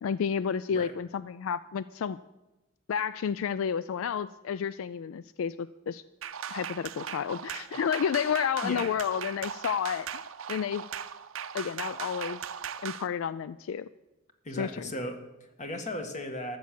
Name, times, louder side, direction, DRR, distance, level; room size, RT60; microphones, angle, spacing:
voice 1, 0.0-2.2 2.9-6.0 6.5-10.1 10.5-10.8 11.5-12.4 12.8-13.9 14.6-14.9, left 7 dB, 75° left, 16 dB, 0.3 m, -31 dB
sound 1, 6.2-13.1, right 8 dB, 75° right, 0.6 m, -38 dB
voice 2, 8.6-9.0 14.4-16.6, left 1 dB, 35° left, 6 dB, 1.6 m, -36 dB
13.5 x 7.2 x 7.5 m, 1.0 s
head